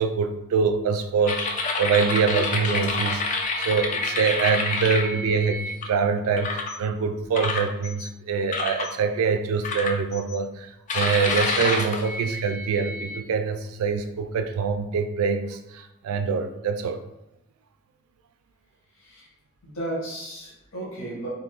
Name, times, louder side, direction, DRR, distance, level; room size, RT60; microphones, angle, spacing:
voice 1, 0.0-17.0, right 5 dB, 85° right, 9 dB, 0.3 m, -25 dB
sound 1, 1.3-5.8 6.4-6.8 7.3-8.1 8.5-8.9 9.6-10.4 10.9-13.2, left 3 dB, 35° left, 0.3 m, -28 dB
voice 2, 19.0-19.3 19.6-21.3, right 1 dB, 80° left, -7 dB, 1.1 m, -34 dB
2.6 x 2.4 x 3.5 m, 0.89 s
head